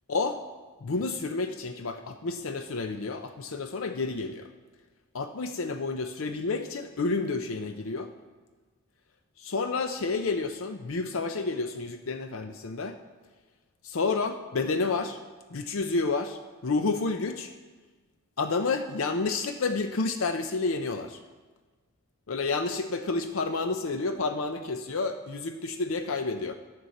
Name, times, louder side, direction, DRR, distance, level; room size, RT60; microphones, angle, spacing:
voice 1, 0.1-0.4 0.8-4.5 5.1-8.1 9.4-13.0 13.8-15.2 15.5-17.5 18.4-21.2 22.3-26.6, left 3 dB, 65° left, 8 dB, 0.6 m, -30 dB
14.0 x 10.5 x 4.2 m, 1.3 s
head